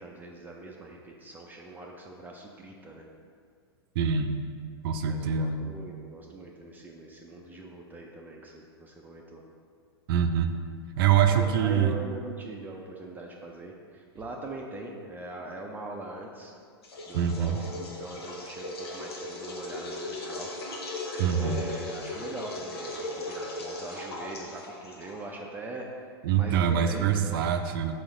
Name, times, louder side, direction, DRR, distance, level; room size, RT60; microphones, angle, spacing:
voice 1, 0.0-3.0 5.1-9.4 11.2-16.5 17.1-20.5 21.4-27.4, right 2 dB, 15° right, 0 dB, 0.5 m, -42 dB
voice 2, 4.0-4.3 4.8-5.6 10.1-10.5 11.0-11.9 17.1-17.6 21.2-21.6 26.2-27.9, right 8 dB, 60° right, 7 dB, 0.6 m, -24 dB
sound 1, 16.8-25.4, left 2 dB, 75° left, 1.2 m, -38 dB
6.2 x 4.9 x 3.7 m, 2.2 s
hypercardioid pair, 120°, 14 cm